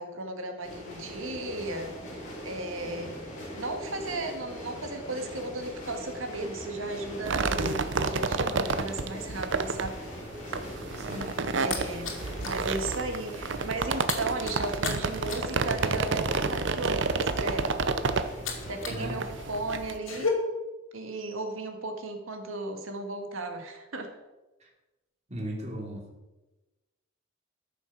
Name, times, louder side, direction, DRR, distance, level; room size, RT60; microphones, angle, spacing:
voice 1, 0.0-3.3 3.6-10.0 11.6-17.8 18.7-20.3 20.9-24.1, right 2 dB, 90° right, 5 dB, 2.0 m, -35 dB
sound 1, 0.6-19.9, equal, 40° left, 4.2 m, -42 dB
sound 2, 7.2-20.0, right 4 dB, 65° right, 0.7 m, -30 dB
sound 3, 10.9-12.7 13.0-13.2 13.5-19.1 19.3-20.3, left 5 dB, 90° left, 2.6 m, -36 dB
voice 2, 11.0-11.3 18.9-19.2 24.6-24.7 25.3-26.0, equal, 35° right, 0 dB, 2.8 m, -36 dB
13.5 x 7.1 x 6.2 m, 1.1 s
head